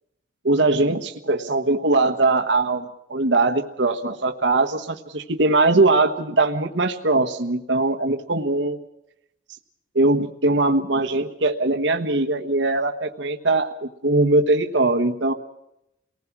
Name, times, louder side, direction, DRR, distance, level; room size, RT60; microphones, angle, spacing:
voice 1, 0.4-8.8 9.9-15.3, right 2 dB, 65° right, 4 dB, 1.3 m, -21 dB
28.5 x 19.0 x 6.1 m, 0.83 s
head